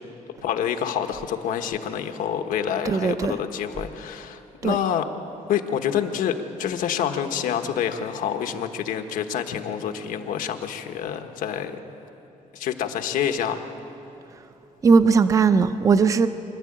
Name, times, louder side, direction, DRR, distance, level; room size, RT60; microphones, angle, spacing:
voice 1, 0.4-5.0 5.5-11.8 12.5-13.6, left 9 dB, 85° left, 1.3 m, -27 dB
voice 2, 2.8-3.3 4.6-4.7 14.8-16.3, right 5 dB, 25° right, 0.5 m, -18 dB
25.0 x 12.0 x 8.8 m
cardioid pair, 175°, 14 cm